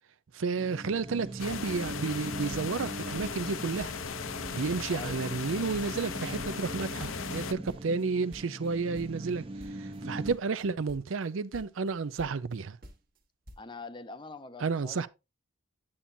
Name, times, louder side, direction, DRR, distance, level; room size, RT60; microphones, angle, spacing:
voice 1, 0.3-4.0 4.5-9.4 9.7-12.8 14.6-15.1, right 4 dB, 75° right, 0.5 m, -31 dB
sound 1, 0.6-10.4, right 1 dB, 25° right, 0.6 m, -41 dB
sound 2, 1.4-7.5, left 6 dB, 80° left, 0.6 m, -38 dB
sound 3, 2.5-2.9 3.1-3.5 3.8-5.5 5.7-8.7 8.9-11.3 11.5-12.5 12.8-13.2 13.5-13.6, equal, 45° right, 1.2 m, -50 dB
voice 2, 4.9-5.3 13.6-15.1, left 3 dB, 25° left, 0.5 m, -44 dB
8.7 x 7.4 x 2.6 m
head